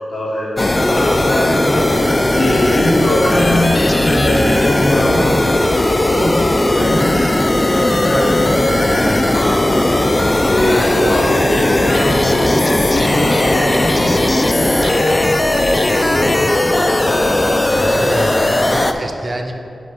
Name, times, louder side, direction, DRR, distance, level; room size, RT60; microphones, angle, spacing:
voice 1, 0.0-1.8 2.3-7.1 7.7-10.0 10.5-17.3 17.7-18.5, left 1 dB, 75° left, -8 dB, 1.3 m, -21 dB
sound 1, 0.6-18.9, left 1 dB, 20° left, 0.3 m, -16 dB
sound 2, 3.2-14.7, left 1 dB, 40° left, 0.9 m, -35 dB
voice 2, 8.8-9.6 17.6-19.5, right 2 dB, 35° right, 4 dB, 0.6 m, -28 dB
7.7 x 3.4 x 5.8 m, 2.6 s
wide cardioid pair, 140°, 0 cm